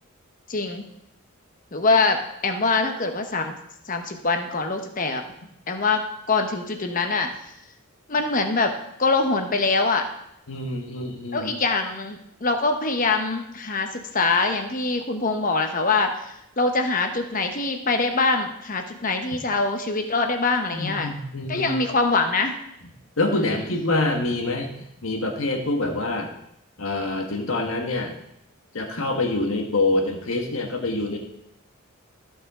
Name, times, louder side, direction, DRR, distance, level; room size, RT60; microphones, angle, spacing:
voice 1, 0.5-0.9 1.7-3.5 3.9-5.2 5.7-7.3 8.1-8.7 9.0-10.0 11.3-21.1 21.5-22.6 23.3-23.6, left 3 dB, 40° left, 5 dB, 1.0 m, -24 dB
voice 2, 10.5-11.5 20.7-21.7 23.2-24.7 25.0-26.3 26.8-28.2 28.7-31.2, left 2 dB, 70° left, 2 dB, 1.5 m, -26 dB
15.0 x 5.7 x 3.7 m, 0.79 s
head